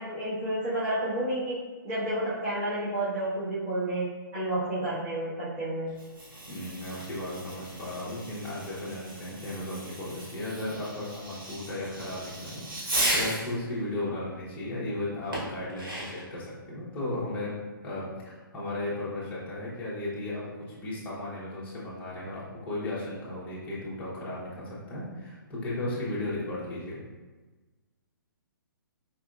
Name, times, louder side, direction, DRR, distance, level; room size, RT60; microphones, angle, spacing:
voice 1, 0.0-5.9, right 1 dB, 25° right, -15 dB, 1.5 m, -30 dB
Fireworks, 5.9-13.6 15.3-16.3, right 1 dB, 70° right, 1.4 m, -35 dB
voice 2, 6.5-17.6 17.8-27.0, left 1 dB, 10° left, -8 dB, 1.0 m, -35 dB
4.4 x 2.7 x 2.5 m, 1.2 s
hypercardioid pair, 145°, 12 cm